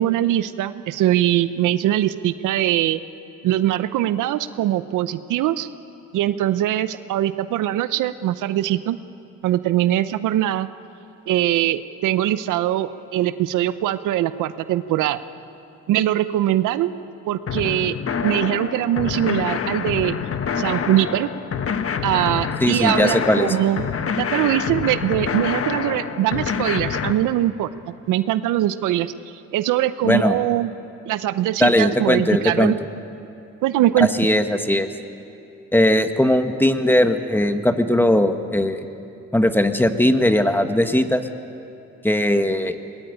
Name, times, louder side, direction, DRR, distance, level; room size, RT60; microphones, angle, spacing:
voice 1, 0.0-3.0 3.4-5.7 6.1-9.0 9.4-10.7 11.3-15.2 15.9-16.9 17.2-18.0 18.2-20.1 20.6-21.3 22.0-23.9 24.2-27.7 28.1-30.7 31.1-32.8 33.6-34.1, right 13 dB, 85° right, 14 dB, 0.8 m, -22 dB
sound 1, 17.5-27.1, left 6 dB, 50° left, 1.4 m, -26 dB
voice 2, 22.6-23.6 30.0-30.4 31.6-32.7 34.0-34.9 35.7-38.9 39.3-41.2 42.0-42.7, left 1 dB, 5° left, 8 dB, 1.4 m, -19 dB
22.0 x 20.0 x 9.2 m, 2.7 s
cardioid pair, 90°, 30 cm